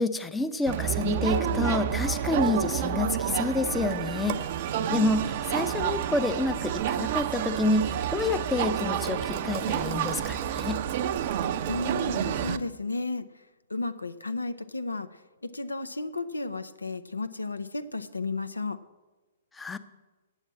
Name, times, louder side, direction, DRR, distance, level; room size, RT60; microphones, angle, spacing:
voice 1, 0.0-4.4 4.9-10.8 19.6-19.8, left 2 dB, 10° left, 11 dB, 0.6 m, -28 dB
Crowd, 0.7-12.6, right 9 dB, 45° right, 0.5 m, -29 dB
voice 2, 11.7-13.3 13.7-15.1 15.4-18.8, left 3 dB, 90° left, 11 dB, 0.6 m, -33 dB
9.0 x 7.1 x 8.6 m, 1.2 s
figure-of-eight pair, 120°, 0 cm